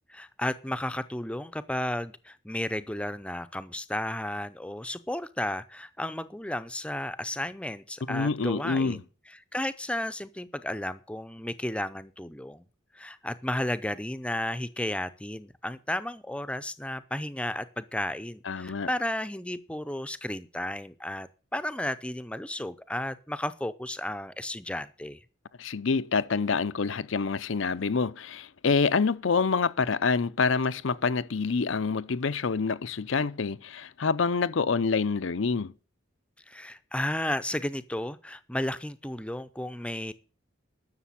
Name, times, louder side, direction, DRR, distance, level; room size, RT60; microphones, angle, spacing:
voice 1, 0.1-12.7 12.9-25.2 36.5-40.1, left 1 dB, 5° left, 0.6 m, -33 dB
voice 2, 8.1-9.0 18.5-18.9 25.6-35.7, left 5 dB, 75° left, 0.6 m, -27 dB
11.5 x 6.7 x 8.5 m
head